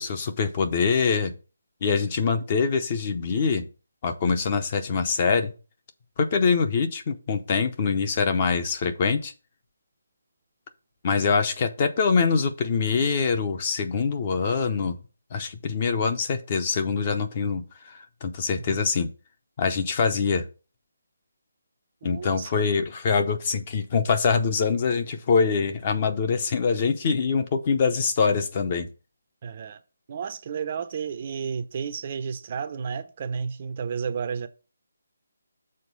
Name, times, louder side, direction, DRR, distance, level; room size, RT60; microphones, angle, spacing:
voice 1, 0.0-1.3 1.8-3.7 4.0-5.5 6.2-9.3 11.0-15.0 15.3-19.1 19.6-20.4 22.0-28.9, left 5 dB, 30° left, 0.7 m, -24 dB
voice 2, 22.0-22.6 29.4-29.8 30.1-34.5, right 6 dB, 30° right, 0.6 m, -32 dB
6.5 x 4.0 x 5.4 m
hypercardioid pair, 170°, 0 cm